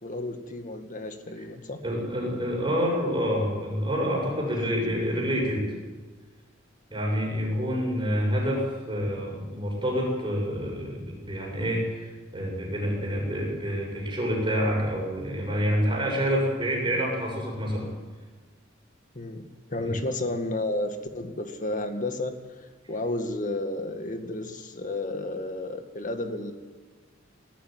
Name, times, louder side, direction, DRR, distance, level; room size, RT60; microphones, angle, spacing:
voice 1, 0.0-1.8 19.2-19.4 19.7-22.4 22.9-26.5, left 2 dB, 45° left, 7 dB, 2.0 m, -32 dB
voice 2, 1.8-5.7 6.9-17.9 19.8-19.9, equal, 25° right, -1 dB, 7.4 m, -27 dB
19.5 x 14.0 x 9.5 m, 1.3 s
head